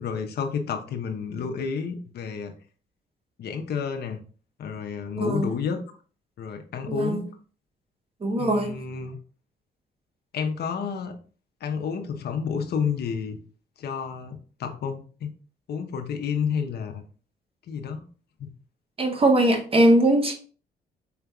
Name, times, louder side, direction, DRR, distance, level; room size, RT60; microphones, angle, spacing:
voice 1, 0.0-2.5 3.4-4.2 4.6-5.8 6.4-7.3 8.4-9.2 10.3-11.2 11.6-13.4 13.8-15.3 15.7-17.0 17.7-18.0 18.4-18.5, left 6 dB, 70° left, 0.7 m, -30 dB
voice 2, 5.2-5.5 6.9-7.3 8.2-8.8 19.0-20.3, right 1 dB, 30° right, 1.0 m, -21 dB
4.8 x 3.4 x 2.3 m
cardioid pair, 80°, 18 cm